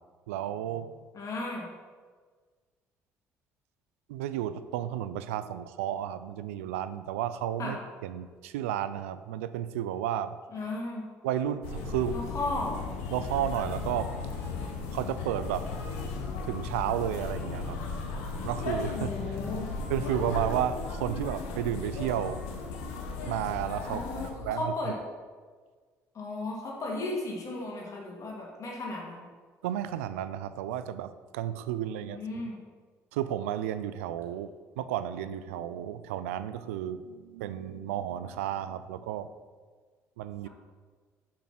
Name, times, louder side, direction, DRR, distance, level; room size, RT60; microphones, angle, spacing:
voice 1, 0.3-1.1 4.1-10.4 11.2-12.2 13.1-14.1 14.9-15.7 16.5-17.8 18.4-19.1 19.9-22.4 23.3-24.0 24.3-24.7 29.6-32.2 33.1-39.3 40.2-40.5, right 11 dB, 90° right, 13 dB, 0.4 m, -32 dB
voice 2, 1.1-1.7 7.6-7.7 10.5-11.0 12.1-12.8 19.0-19.7 23.9-24.9 26.1-29.3 32.0-32.6, left 2 dB, 50° left, -2 dB, 2.6 m, -35 dB
sound 1, 11.6-24.3, left 4 dB, 85° left, 1.1 m, -36 dB
6.2 x 6.1 x 5.8 m, 1.5 s
hypercardioid pair, 60°, 7 cm